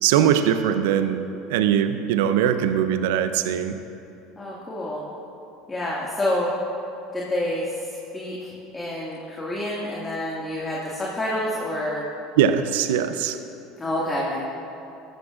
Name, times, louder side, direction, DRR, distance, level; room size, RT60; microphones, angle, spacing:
voice 1, 0.0-1.2 1.5-3.8 12.4-13.4, right 9 dB, 75° right, 10 dB, 0.6 m, -21 dB
voice 2, 4.4-5.0 5.7-6.5 7.1-12.0 13.8-14.4, left 1 dB, 20° left, -5 dB, 2.1 m, -28 dB
13.5 x 13.5 x 2.5 m, 2.8 s
hypercardioid pair, 80°, 0 cm